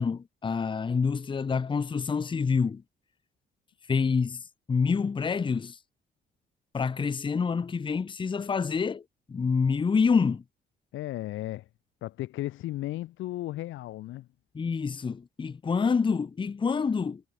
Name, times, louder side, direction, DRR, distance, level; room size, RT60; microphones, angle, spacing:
voice 1, 0.0-2.8 3.9-4.4 4.7-5.8 6.7-9.0 9.3-10.4 14.5-17.2, left 5 dB, 25° left, 0.6 m, -27 dB
voice 2, 10.9-11.7 12.0-14.3, left 15 dB, 80° left, 0.8 m, -35 dB
cardioid pair, 90°, 20 cm